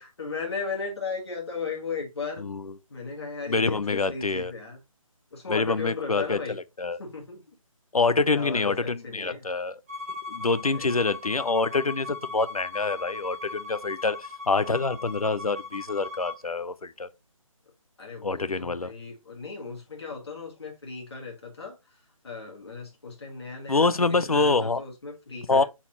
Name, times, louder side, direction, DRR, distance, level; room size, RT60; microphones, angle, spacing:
voice 1, 0.0-2.4 2.9-4.8 5.3-6.6 7.0-7.4 8.3-9.5 10.7-10.9 18.0-21.8 22.2-25.6, left 4 dB, 50° left, 1.5 m, -36 dB
voice 2, 2.4-2.7 3.5-4.5 5.5-6.4 6.8-7.0 7.9-9.8 10.3-17.1 18.2-18.9 23.7-24.8 25.5-25.6, left 3 dB, 85° left, 0.5 m, -26 dB
Bowed string instrument, 9.9-16.4, left 3 dB, 25° right, 0.9 m, -39 dB
4.1 x 4.0 x 2.9 m
figure-of-eight pair, 150°, 18 cm